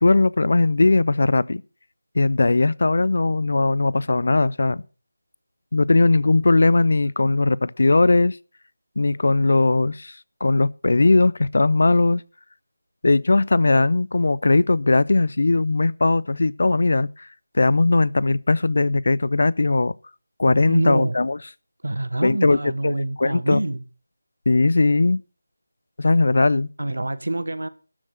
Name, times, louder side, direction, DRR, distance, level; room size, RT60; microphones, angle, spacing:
voice 1, 0.0-1.6 2.1-4.8 5.7-8.4 9.0-12.2 13.0-17.3 17.5-19.9 20.4-21.4 22.2-22.6 22.8-22.9 23.2-23.6 24.5-25.2 26.0-26.7, left 3 dB, 60° left, 0.5 m, -19 dB
voice 2, 20.7-21.2 21.8-23.8 26.8-27.7, right 2 dB, 75° right, 1.1 m, -25 dB
12.5 x 7.6 x 6.2 m
figure-of-eight pair, 165°, 0 cm